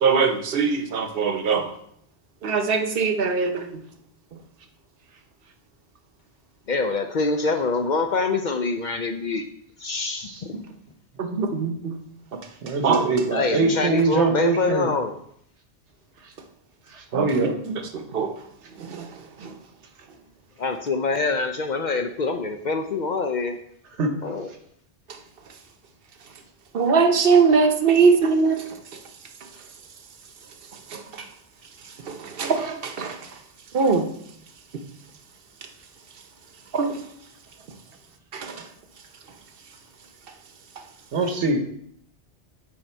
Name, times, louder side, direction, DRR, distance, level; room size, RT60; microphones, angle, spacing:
voice 1, 0.0-1.7 2.4-3.7 11.2-12.0 12.8-13.1 17.1-18.3 18.8-19.1 19.4-19.5 26.7-28.6 30.9-31.0 32.1-33.2 33.7-34.1 36.7-36.9 38.3-38.6, right 5 dB, 60° right, 7 dB, 1.0 m, -21 dB
voice 2, 6.7-9.5 9.8-10.6 13.3-15.1 20.6-23.6 24.2-24.5, left 4 dB, 55° left, 6 dB, 0.6 m, -25 dB
voice 3, 12.6-14.9 16.9-17.6 24.0-24.1 41.1-41.6, right 3 dB, 90° right, 5 dB, 1.3 m, -23 dB
8.6 x 4.4 x 4.4 m, 0.69 s
omnidirectional pair, 1.1 m